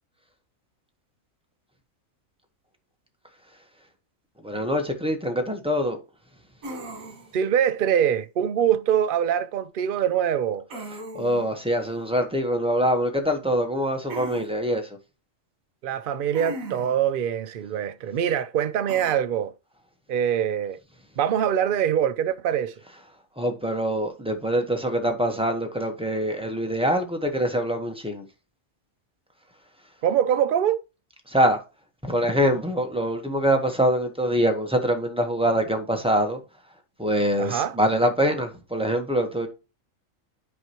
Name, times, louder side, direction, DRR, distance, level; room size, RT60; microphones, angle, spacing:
voice 1, 4.4-6.0 11.1-15.0 23.4-28.2 31.3-31.6 32.0-36.4 37.0-39.5, equal, 5° right, 1.0 m, -24 dB
sound 1, 6.6-7.4 10.7-11.5 14.1-14.5 16.3-17.0 18.9-19.1, right 2 dB, 85° right, 1.7 m, -37 dB
voice 2, 7.3-10.7 15.8-19.5 20.1-20.8 21.2-22.7 30.0-30.8 37.4-37.8, right 9 dB, 55° right, 0.6 m, -24 dB
9.6 x 4.7 x 2.9 m
omnidirectional pair, 1.4 m